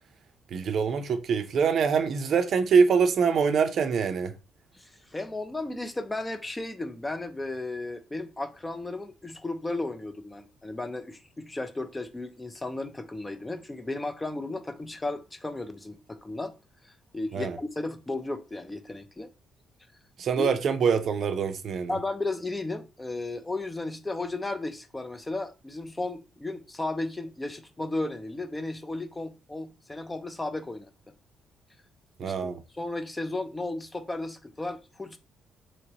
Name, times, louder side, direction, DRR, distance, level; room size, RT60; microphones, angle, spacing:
voice 1, 0.5-4.3 17.3-17.6 20.2-22.0 32.2-32.6, right 6 dB, 60° right, 0.5 m, -24 dB
voice 2, 4.8-16.5 16.8-19.3 20.4-20.5 21.9-30.9 32.2-35.2, left 2 dB, 15° left, 0.4 m, -34 dB
3.0 x 2.9 x 2.7 m
cardioid pair, 90°, 0 cm